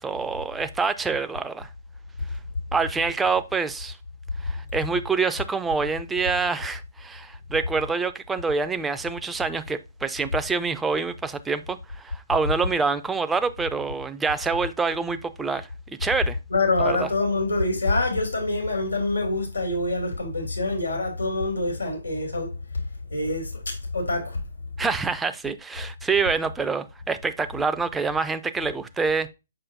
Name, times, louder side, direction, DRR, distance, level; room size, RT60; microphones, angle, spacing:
voice 1, 0.0-1.7 2.7-4.0 4.4-16.4 16.8-17.1 24.8-29.3, right 4 dB, 10° right, 0.3 m, -26 dB
voice 2, 16.5-22.5 23.1-24.4, left 2 dB, 85° left, 2.7 m, -25 dB
6.7 x 5.4 x 2.6 m
figure-of-eight pair, 130°, 0 cm